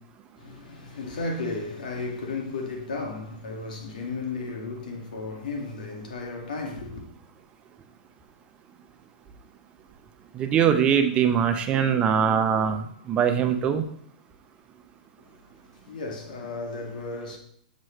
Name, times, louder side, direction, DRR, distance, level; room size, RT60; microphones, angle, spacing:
voice 1, 0.4-7.0 15.3-17.4, left 3 dB, 75° left, 2.0 m, -34 dB
voice 2, 10.4-13.8, right 8 dB, 25° right, 0.7 m, -22 dB
7.5 x 6.3 x 3.2 m
hypercardioid pair, 135°, 5 cm